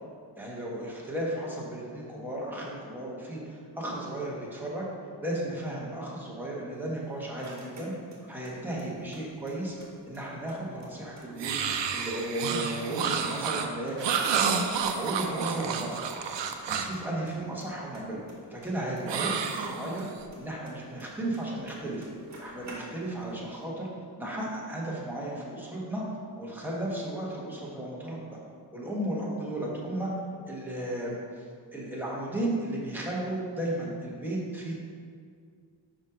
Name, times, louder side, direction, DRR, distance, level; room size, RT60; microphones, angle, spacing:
voice 1, 0.4-4.9 5.2-7.9 8.3-9.8 10.1-11.6 11.9-16.1 16.7-18.2 18.5-20.1 20.4-22.1 22.4-23.9 24.2-26.0 26.3-28.2 28.7-30.1 30.5-31.4 31.7-34.7, right 1 dB, 5° right, -5 dB, 1.2 m, -34 dB
sound 1, 6.8-8.5 8.8-9.9 10.1-10.2 10.5-11.9 12.2-12.9 13.2-14.6 14.9-15.0 15.2-15.3 15.6-15.7 15.9-16.3 16.6-17.0 17.3-19.7 20.0-21.4 21.7-21.8 22.0-23.2, right 2 dB, 40° right, 1.6 m, -50 dB
sound 2, 11.4-17.0 19.1-20.2, right 6 dB, 80° right, 0.6 m, -30 dB
5.4 x 5.1 x 5.0 m, 2.1 s
wide cardioid pair, 165°, 43 cm